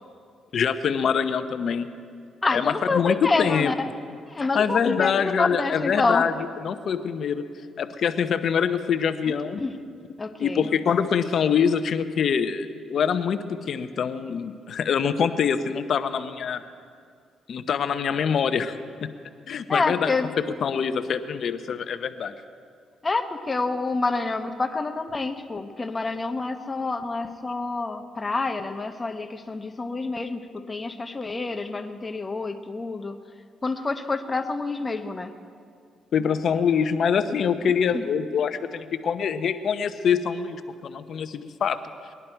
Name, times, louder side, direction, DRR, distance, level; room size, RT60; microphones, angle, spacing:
voice 1, 0.5-1.9 2.5-3.7 4.5-6.3 6.6-7.4 7.8-9.6 10.4-16.6 17.5-18.7 19.0-19.1 19.5-20.1 20.5-22.4 36.1-41.8, left 7 dB, 60° left, 10 dB, 0.7 m, -24 dB
voice 2, 2.4-3.9 4.3-6.2 9.6-9.7 10.2-10.7 19.7-20.3 23.0-30.4 30.7-33.2 33.6-35.3 37.9-38.1, left 3 dB, 25° left, 7 dB, 0.9 m, -27 dB
20.0 x 11.0 x 4.5 m, 2.2 s
cardioid pair, 90°, 0 cm